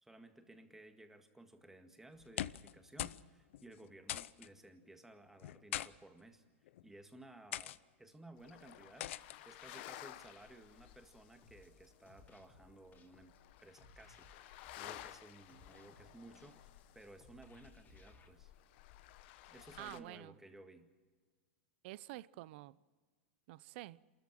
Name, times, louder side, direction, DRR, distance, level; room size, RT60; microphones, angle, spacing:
voice 1, 0.0-6.4 6.8-9.1 9.4-13.3 13.6-18.5 19.5-20.9, right 2 dB, 5° right, 1.9 m, -57 dB
sound 1, 2.2-2.7 3.0-3.3 3.5-3.6 4.1-4.5 5.4-5.9 6.7-6.9 7.5-7.8 9.0-9.4, left 13 dB, 75° left, 0.6 m, -41 dB
sound 2, 8.4-20.0, left 14 dB, 55° left, 1.0 m, -55 dB
sound 3, 11.4-18.3, left 3 dB, 25° left, 2.9 m, -63 dB
voice 2, 19.8-20.4 21.8-22.8 23.5-24.0, right 17 dB, 55° right, 0.6 m, -49 dB
28.0 x 14.0 x 7.5 m
supercardioid pair, 135°, 7 cm